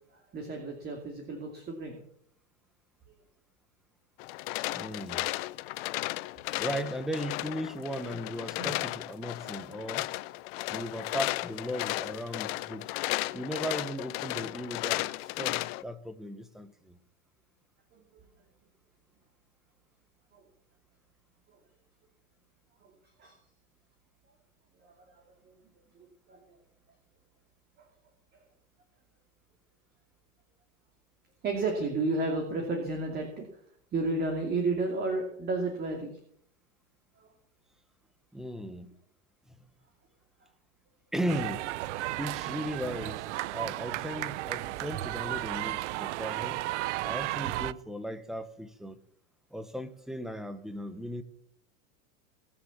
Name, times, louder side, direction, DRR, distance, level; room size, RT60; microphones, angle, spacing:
voice 1, 0.1-2.0 5.8-6.0 8.6-8.7 17.9-18.2 20.3-20.4 22.8-22.9 23.2-23.4 24.8-25.6 26.3-26.6 27.8-27.9 31.4-33.6 33.9-36.1 37.2-37.3 40.4-40.5, right 3 dB, 25° right, 2.7 m, -33 dB
sound 1, 4.2-15.8, left 20 dB, 55° left, 0.7 m, -34 dB
voice 2, 4.7-5.3 6.6-10.1 10.7-12.9 13.3-17.0 38.3-38.9 39.5-39.6 41.1-41.7 42.2-46.6 47.0-49.0 49.5-51.2, equal, ahead, 1.0 m, -37 dB
sound 2, 41.3-47.7, right 17 dB, 70° right, 0.7 m, -34 dB
20.0 x 7.0 x 7.2 m
supercardioid pair, 145°, 36 cm